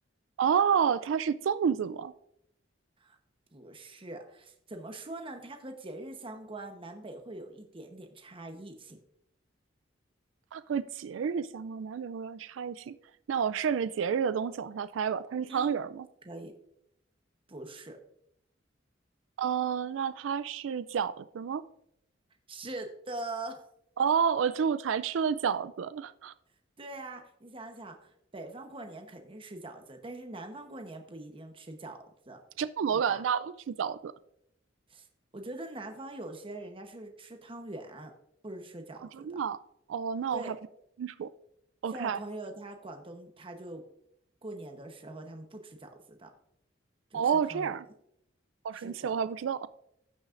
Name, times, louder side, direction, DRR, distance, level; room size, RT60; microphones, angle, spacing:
voice 1, 0.4-2.1 10.5-12.9 13.3-16.1 19.4-21.6 24.0-26.3 32.6-34.1 39.1-39.6 39.9-40.6 41.0-41.3 41.8-42.2 47.1-47.8 48.6-49.7, right 7 dB, 85° right, 0.4 m, -30 dB
voice 2, 3.5-9.0 15.5-15.7 16.2-16.5 17.5-18.0 22.5-23.6 26.8-32.4 32.9-33.2 34.9-35.1 35.3-38.1 38.4-39.4 40.3-40.5 41.9-43.8 44.4-46.3 47.1-47.2 47.5-47.7 48.7-49.1, right 2 dB, 30° right, 1.0 m, -43 dB
16.0 x 6.3 x 2.5 m
head